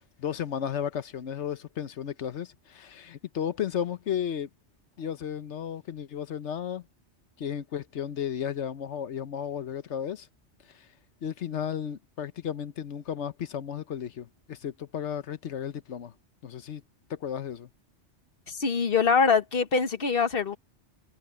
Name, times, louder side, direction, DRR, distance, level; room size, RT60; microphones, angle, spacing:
voice 1, 0.2-4.5 5.0-6.8 7.4-10.3 10.7-10.9 11.2-16.1 16.4-16.8 17.1-17.7, left 8 dB, 75° left, 1.2 m, -34 dB
voice 2, 18.5-20.6, left 5 dB, 55° left, 1.4 m, -24 dB
omnidirectional pair, 1.2 m